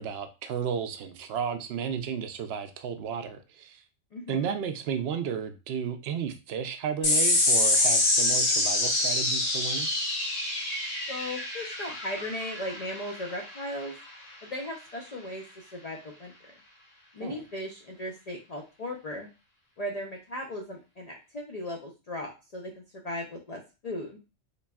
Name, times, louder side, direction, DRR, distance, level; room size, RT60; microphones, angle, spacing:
voice 1, 0.0-3.8 4.3-9.9 17.2-17.4, right 7 dB, 65° right, 8 dB, 0.7 m, -33 dB
voice 2, 4.1-4.5 11.1-13.9 14.4-16.3 17.1-19.3 19.8-24.2, left 1 dB, 55° left, 1 dB, 0.4 m, -37 dB
sound 1, 7.0-13.8, left 2 dB, 70° left, 1.4 m, -26 dB
4.0 x 3.2 x 2.3 m, 0.30 s
omnidirectional pair, 1.4 m